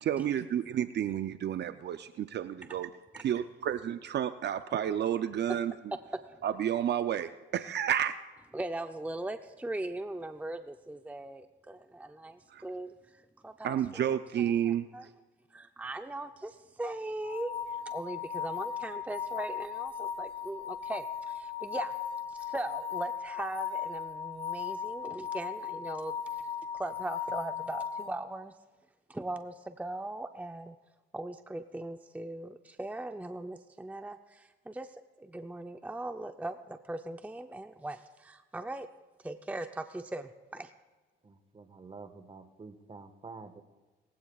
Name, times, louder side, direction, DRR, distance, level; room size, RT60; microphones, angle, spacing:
voice 1, 0.0-2.9 3.2-5.7 6.4-8.1 12.5-12.6 13.6-15.1, right 10 dB, 60° right, 11 dB, 0.6 m, -31 dB
voice 2, 8.5-14.2 14.6-15.1 15.5-21.9 22.3-26.2 26.7-28.5 29.1-30.8 31.1-38.9 39.2-40.7, right 2 dB, 5° right, 8 dB, 0.6 m, -39 dB
sound 1, 17.2-28.1, left 7 dB, 45° left, 3.7 m, -37 dB
voice 3, 41.2-43.6, right 4 dB, 30° right, 9 dB, 1.4 m, -48 dB
21.0 x 16.0 x 2.4 m, 1.3 s
cardioid pair, 90°, 20 cm